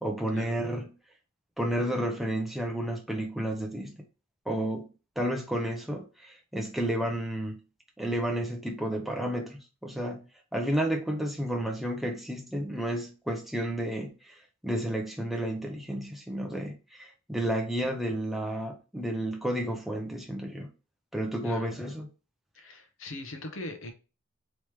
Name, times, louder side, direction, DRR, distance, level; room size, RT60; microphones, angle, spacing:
voice 1, 0.0-0.9 1.6-3.9 4.5-4.9 5.2-7.6 8.0-10.2 10.5-14.3 14.6-20.7 21.1-22.1, right 1 dB, ahead, 0.6 m, -31 dB
voice 2, 21.4-21.7 22.5-23.9, left 2 dB, 65° left, 0.8 m, -40 dB
3.2 x 2.9 x 3.3 m
head